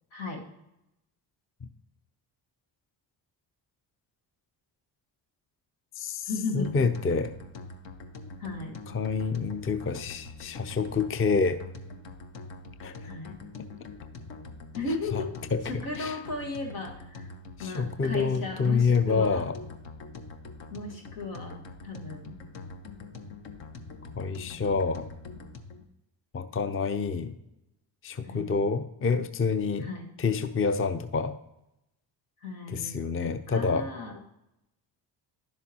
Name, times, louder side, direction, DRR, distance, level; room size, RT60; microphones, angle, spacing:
voice 1, 0.1-0.4 6.2-6.9 8.4-8.8 13.1-13.4 14.7-15.3 15.6-17.3 17.6-19.4 20.7-21.5 21.8-22.4 28.2-28.5 29.8-30.1 32.4-34.2, left 3 dB, 85° left, 1 dB, 1.6 m, -35 dB
voice 2, 6.0-6.3 6.5-7.3 8.9-11.6 12.8-12.9 15.1-15.2 15.5-15.6 16.0-16.2 17.6-19.5 24.2-25.1 26.3-27.3 28.0-29.9 30.2-31.4 32.7-33.9, left 4 dB, 30° left, 10 dB, 0.6 m, -27 dB
sound 1, 6.6-25.8, left 3 dB, 65° left, 0.9 m, -44 dB
10.5 x 7.1 x 2.8 m, 0.88 s
supercardioid pair, 55°, 47 cm